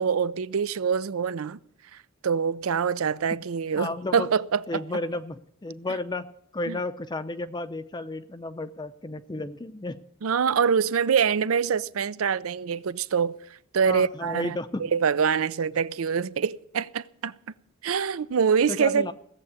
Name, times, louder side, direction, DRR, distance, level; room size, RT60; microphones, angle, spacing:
voice 1, 0.0-1.6 2.2-4.8 6.7-6.8 10.2-17.3 17.8-19.1, right 6 dB, 80° right, 0.5 m, -25 dB
voice 2, 3.8-4.3 4.7-6.3 6.5-10.0 13.9-14.9 18.7-19.1, left 2 dB, 20° left, 0.5 m, -32 dB
17.0 x 7.6 x 9.6 m
head